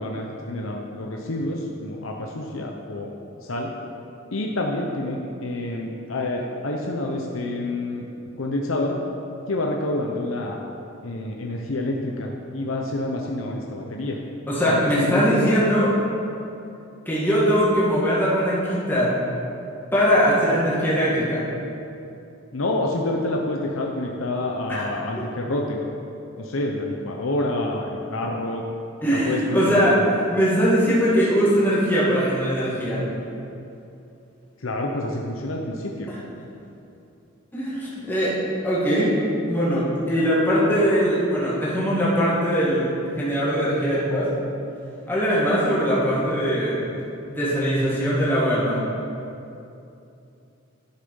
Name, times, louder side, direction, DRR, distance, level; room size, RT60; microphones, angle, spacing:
voice 1, 0.0-3.1 3.4-3.7 4.3-8.1 8.4-9.0 9.5-10.6 11.0-14.2 14.7-15.4 22.5-25.8 26.4-28.6 29.2-30.1 34.6-36.1, left 1 dB, 85° left, 0 dB, 0.9 m, -28 dB
voice 2, 14.5-15.9 17.1-19.1 19.9-21.4 29.0-33.0 37.5-38.3 38.6-39.1 39.5-44.3 45.1-46.8 47.3-48.8, equal, 10° left, -8 dB, 2.1 m, -21 dB
11.5 x 6.6 x 5.5 m, 2.7 s
head